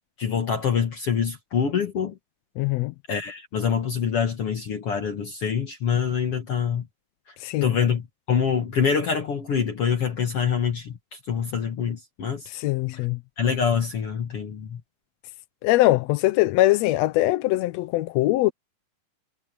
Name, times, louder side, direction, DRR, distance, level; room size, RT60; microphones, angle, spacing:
voice 1, 0.2-2.1 3.1-6.9 7.6-12.5 12.9-13.1 13.4-14.8, left 7 dB, 50° left, 2.4 m, -25 dB
voice 2, 2.6-2.9 7.4-7.7 12.5-13.2 15.6-18.5, left 17 dB, 75° left, 1.6 m, -22 dB
omnidirectional pair, 3.5 m